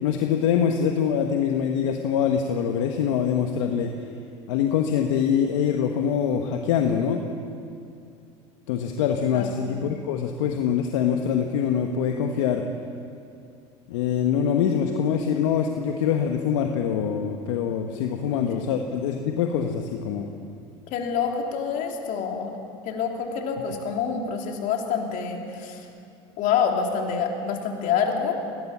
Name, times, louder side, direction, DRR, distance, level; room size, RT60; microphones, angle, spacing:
voice 1, 0.0-3.9 4.5-7.2 8.7-12.7 13.9-20.3, left 8 dB, 80° left, 4 dB, 1.3 m, -24 dB
voice 2, 20.9-22.5 22.8-25.8 26.4-28.3, left 6 dB, 60° left, 2 dB, 3.3 m, -27 dB
21.0 x 18.0 x 7.4 m, 2.4 s
hypercardioid pair, 85°, 15 cm